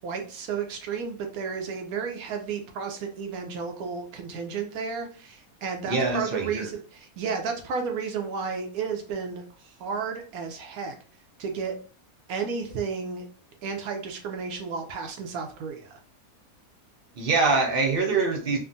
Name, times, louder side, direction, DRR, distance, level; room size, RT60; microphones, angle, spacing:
voice 1, 0.0-10.9 11.4-11.7 12.3-13.3 13.6-16.0, right 5 dB, 80° right, 4 dB, 1.1 m, -32 dB
voice 2, 5.9-6.7 17.2-18.6, right 4 dB, 60° right, 2 dB, 0.6 m, -24 dB
3.5 x 2.1 x 2.5 m, 0.39 s
omnidirectional pair, 1.5 m